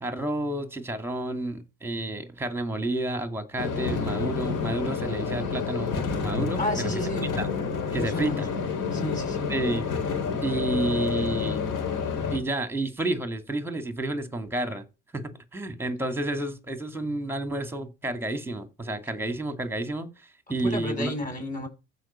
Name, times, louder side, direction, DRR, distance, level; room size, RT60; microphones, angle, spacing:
voice 1, 0.0-6.9 7.4-7.5 7.9-8.5 9.5-9.8 10.4-11.7 12.3-14.8 15.1-20.1 20.5-21.1, right 2 dB, 5° right, 2.2 m, -30 dB
sound 1, 3.6-12.4, left 5 dB, 70° left, 3.8 m, -29 dB
voice 2, 6.6-7.3 7.9-8.4 8.9-9.5 20.6-21.7, left 1 dB, 25° left, 7.3 m, -31 dB
14.5 x 5.3 x 5.7 m
supercardioid pair, 80°, 32 cm